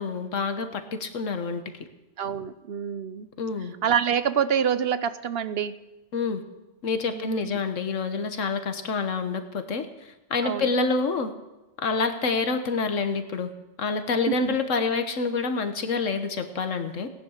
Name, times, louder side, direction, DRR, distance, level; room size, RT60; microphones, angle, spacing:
voice 1, 0.0-1.6 3.4-3.7 6.1-6.4 6.8-9.9 10.3-11.3 11.8-13.5 13.8-17.1, left 4 dB, 80° left, 8 dB, 1.6 m, -27 dB
voice 2, 2.2-3.3 3.8-5.8 7.1-7.6 10.4-10.7 14.3-14.6, right 8 dB, 55° right, 13 dB, 0.9 m, -26 dB
18.0 x 10.5 x 6.5 m, 1.0 s
omnidirectional pair, 1.3 m